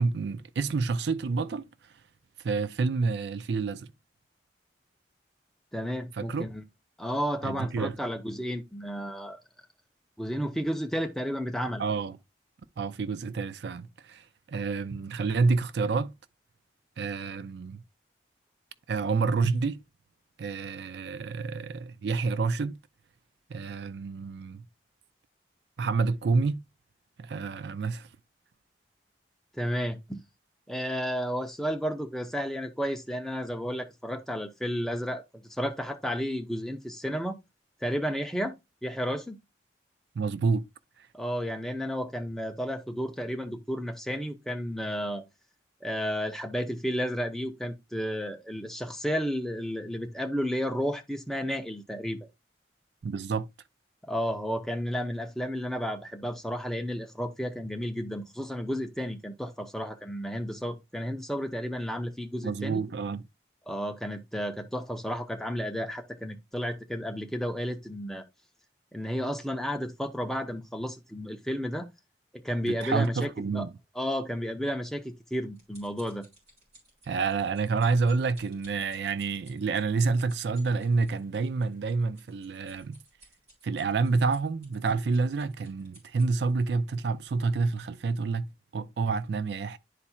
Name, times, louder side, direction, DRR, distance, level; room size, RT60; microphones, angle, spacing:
voice 1, 0.0-1.7 2.4-3.9 6.1-6.5 7.4-8.0 11.8-12.2 12.8-16.1 17.0-17.8 18.9-19.8 20.4-22.8 23.5-24.6 25.8-26.6 27.2-28.1 40.2-40.7 41.0-41.1 53.0-53.5 62.4-63.2 72.7-73.7 77.1-83.0 83.6-89.8, right 4 dB, 70° right, 0.4 m, -28 dB
voice 2, 5.7-6.6 7.0-9.4 10.2-11.8 29.5-30.2 30.7-37.4 37.8-38.5 38.8-39.4 41.1-45.2 45.8-52.2 54.0-62.8 63.7-68.3 68.9-71.9 72.3-73.3 73.5-73.7 74.0-76.3, equal, ahead, 0.6 m, -32 dB
sound 1, 75.0-86.6 87.3-87.5 87.8-87.9, right 1 dB, 35° right, 3.6 m, -58 dB
11.0 x 4.2 x 2.3 m
head